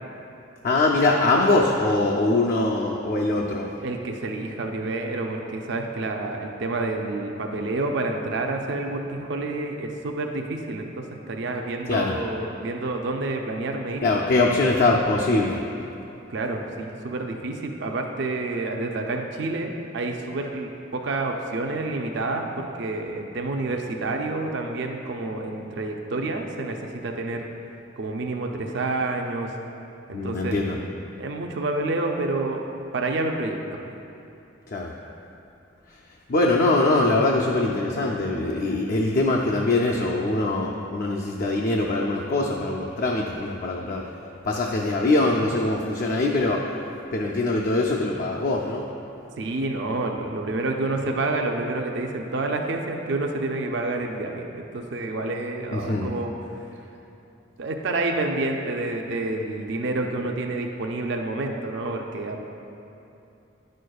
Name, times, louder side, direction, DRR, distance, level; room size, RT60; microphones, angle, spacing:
voice 1, 0.6-3.7 11.9-12.2 14.0-15.6 30.1-30.8 34.7-34.9 36.3-44.0 44.4-46.7 47.1-48.8 55.7-56.1, left 2 dB, 50° left, -1 dB, 0.4 m, -22 dB
voice 2, 3.8-14.1 16.3-22.4 22.8-27.5 28.0-29.5 30.1-30.6 31.2-33.6 49.4-56.3 57.6-62.4, right 2 dB, 60° right, 2 dB, 0.5 m, -28 dB
9.9 x 6.3 x 2.3 m, 2.8 s
head